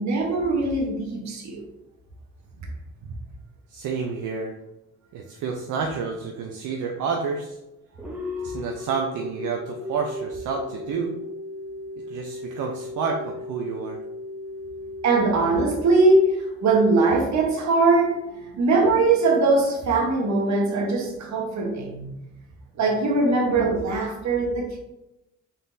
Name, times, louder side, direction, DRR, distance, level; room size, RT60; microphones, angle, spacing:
voice 1, 0.0-1.6 8.4-8.5 15.0-18.2 18.5-22.1 22.8-24.8, right 3 dB, 65° right, 1 dB, 1.1 m, -21 dB
voice 2, 3.7-4.5 5.1-7.6 8.4-11.1 12.1-14.0, right 5 dB, 80° right, 1 dB, 0.6 m, -29 dB
sound 1, 8.0-18.7, left 2 dB, 5° right, 0.8 m, -37 dB
3.9 x 3.9 x 2.6 m, 0.92 s
cardioid pair, 90°, 30 cm